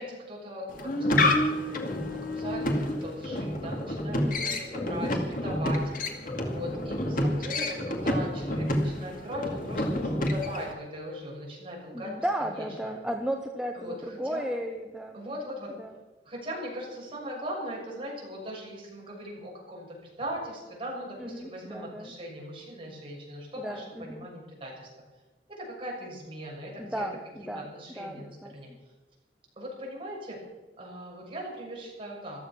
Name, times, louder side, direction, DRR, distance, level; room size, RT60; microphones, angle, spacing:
voice 1, 0.0-5.9 6.4-12.9 13.7-14.5 15.1-15.7 16.2-24.9 25.5-27.1 27.4-28.7 29.6-30.4 30.8-32.4, equal, 30° right, -3 dB, 6.7 m, -39 dB
sound 1, 0.7-10.7, left 1 dB, 50° left, 2.3 m, -29 dB
voice 2, 4.1-5.1 11.9-15.2 15.8-15.9 21.2-22.1 23.6-24.3 26.8-27.7 28.0-28.8, equal, 5° right, 3 dB, 0.9 m, -35 dB
15.0 x 13.5 x 6.1 m, 1.2 s
head